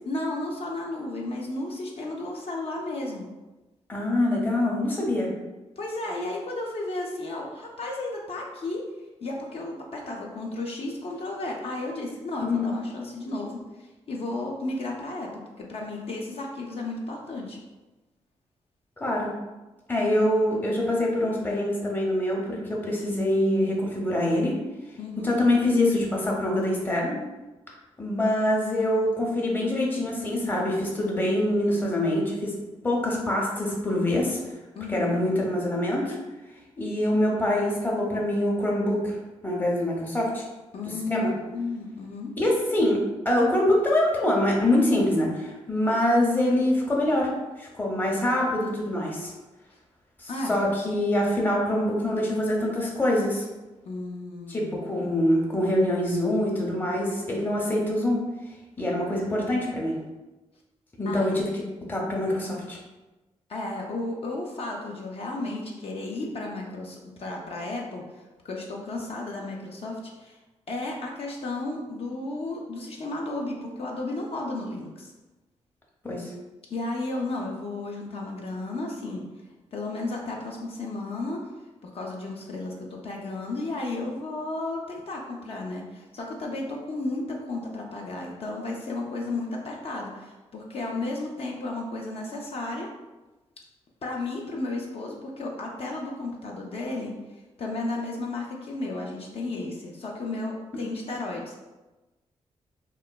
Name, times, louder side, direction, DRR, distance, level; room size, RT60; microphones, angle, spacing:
voice 1, 0.1-3.3 5.8-8.9 9.2-17.6 25.0-25.4 34.8-35.2 40.7-42.3 50.3-50.6 53.9-55.1 61.0-61.3 63.5-70.4 70.7-75.1 76.7-79.3 79.7-81.5 81.8-92.9 94.0-97.1 97.6-101.5, left 2 dB, 55° left, -1 dB, 0.4 m, -33 dB
voice 2, 3.9-5.3 12.4-12.6 19.0-19.3 19.9-24.5 25.2-27.1 28.0-32.6 32.8-34.4 34.9-36.2 36.8-39.2 39.4-40.4 41.1-41.3 42.4-47.3 47.6-49.3 50.2-53.4 54.5-58.2 58.8-59.9 61.0-61.5 61.9-62.8 76.0-76.3, left 1 dB, 15° left, -3 dB, 0.6 m, -24 dB
3.0 x 2.1 x 2.2 m, 1.1 s
cardioid pair, 65°, 12 cm